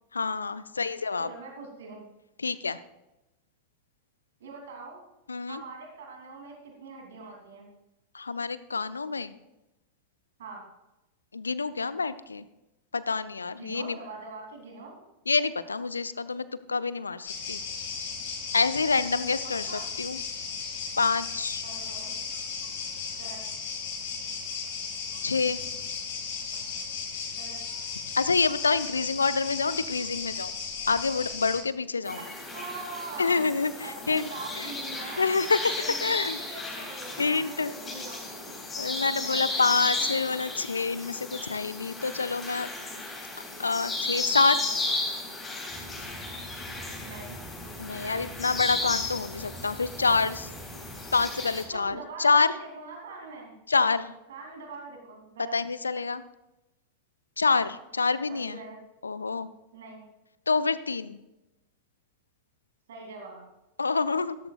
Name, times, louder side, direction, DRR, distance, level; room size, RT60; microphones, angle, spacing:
voice 1, 0.1-1.3 2.4-2.8 5.3-5.6 8.1-9.3 11.3-12.4 12.9-14.0 15.3-17.6 18.5-19.7 20.0-20.2 21.0-21.6 25.2-25.6 28.2-30.5 30.9-32.2 33.2-34.3 34.6-34.7 35.2-35.6 36.0-36.4 37.2-38.0 38.8-42.7 43.6-44.6 47.8-50.5 51.1-52.5 53.7-54.1 55.5-56.2 57.4-58.6 59.0-59.5 60.5-61.2 63.8-64.4, left 4 dB, 75° left, 16 dB, 0.5 m, -27 dB
voice 2, 1.2-2.1 4.4-5.0 5.5-7.7 10.4-10.6 13.5-15.0 19.7-19.9 21.6-22.2 23.1-23.5 27.3-27.6 32.5-33.4 33.8-35.3 35.8-38.6 39.1-40.1 44.6-44.9 47.0-47.4 47.9-48.2 51.7-53.5 54.3-55.6 58.3-58.8 59.7-60.0 62.9-63.4, right 4 dB, 60° right, 1 dB, 2.8 m, -43 dB
sound 1, 17.3-31.6, left 5 dB, 55° left, 2.8 m, -35 dB
sound 2, 32.0-51.6, left 2 dB, 15° left, 3.9 m, -34 dB
sound 3, 45.7-52.0, right 1 dB, 20° right, 4.6 m, -46 dB
15.0 x 13.5 x 2.4 m, 0.96 s
figure-of-eight pair, 90°, 0 cm